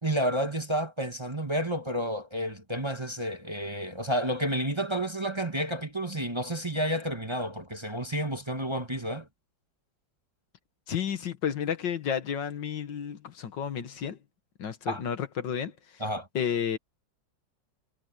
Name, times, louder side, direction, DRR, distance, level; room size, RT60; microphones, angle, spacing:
voice 1, 0.0-9.3 14.9-15.0 16.0-16.3, right 1 dB, 15° right, 1.6 m, -30 dB
voice 2, 10.9-14.2 14.6-16.0 16.3-16.8, left 8 dB, 70° left, 2.0 m, -31 dB
omnidirectional pair, 2.1 m